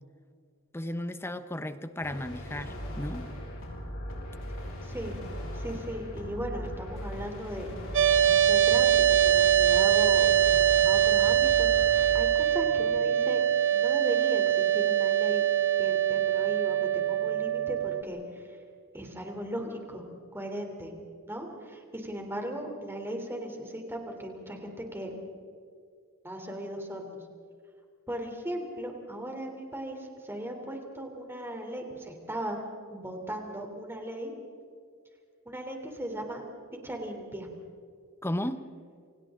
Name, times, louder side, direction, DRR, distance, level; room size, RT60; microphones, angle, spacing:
voice 1, 0.7-3.3 38.2-38.6, left 1 dB, 10° left, 11 dB, 1.0 m, -34 dB
sound 1, 2.0-12.2, equal, 65° left, 5.6 m, -38 dB
voice 2, 4.8-5.2 5.5-8.0 8.3-10.3 10.8-13.4 13.7-15.4 15.8-18.6 18.9-20.0 20.3-20.9 21.3-25.1 26.2-27.2 28.1-32.6 32.9-34.3 35.5-36.4 36.7-37.5, right 1 dB, 10° right, 2 dB, 3.5 m, -37 dB
sound 2, 7.9-18.0, right 10 dB, 65° right, 1.3 m, -23 dB
29.5 x 25.5 x 3.9 m, 2.2 s
head